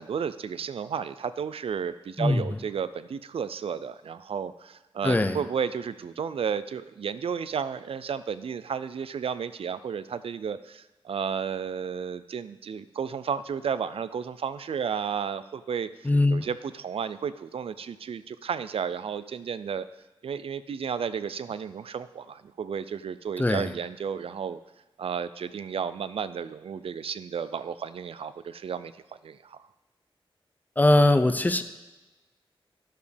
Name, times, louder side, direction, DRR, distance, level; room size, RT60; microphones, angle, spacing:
voice 1, 0.0-15.9 16.3-19.9 20.2-24.6 25.0-28.9 29.2-29.6, right 7 dB, 85° right, 14 dB, 0.4 m, -32 dB
voice 2, 5.0-5.4 16.0-16.5 23.4-23.7 30.8-31.6, left 2 dB, 20° left, 10 dB, 0.4 m, -21 dB
11.5 x 7.1 x 3.4 m, 1.1 s
wide cardioid pair, 125°, 10 cm